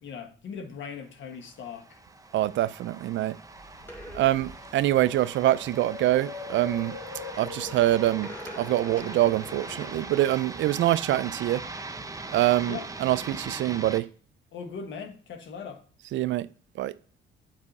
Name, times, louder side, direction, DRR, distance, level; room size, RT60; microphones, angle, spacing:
voice 1, 0.0-2.0 12.6-12.9 14.5-15.8, left 6 dB, 70° left, 1.4 m, -39 dB
sound 1, 1.5-14.0, right 3 dB, 15° right, 0.7 m, -41 dB
voice 2, 2.3-3.4 4.1-7.0 7.4-11.6 12.3-14.1 16.1-16.5 16.8-16.9, right 14 dB, 70° right, 0.4 m, -25 dB
sound 2, 3.5-10.1, left 4 dB, 85° left, 3.5 m, -43 dB
sound 3, 3.8-4.5 6.4-6.8 8.2-10.1 10.4-10.7, equal, 10° left, 2.2 m, -44 dB
7.4 x 4.9 x 4.2 m
cardioid pair, 90°, 20 cm